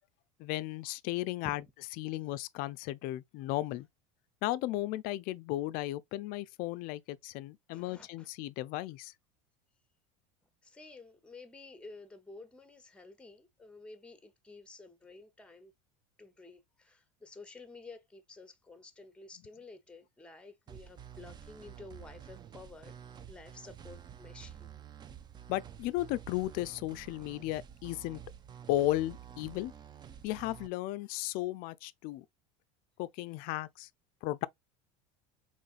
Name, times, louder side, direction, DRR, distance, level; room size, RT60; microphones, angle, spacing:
voice 1, 0.4-1.6 2.0-3.9 4.4-9.1 25.5-28.2 28.7-29.7 30.2-32.2 33.0-33.9 34.2-34.5, left 16 dB, 55° left, 0.4 m, -35 dB
voice 2, 7.7-8.3 10.6-15.7 16.2-22.9 23.2-24.8, left 3 dB, 5° left, 0.8 m, -52 dB
sound 1, 20.7-30.7, right 9 dB, 25° right, 0.4 m, -50 dB
4.0 x 3.1 x 2.4 m
supercardioid pair, 110°, 18 cm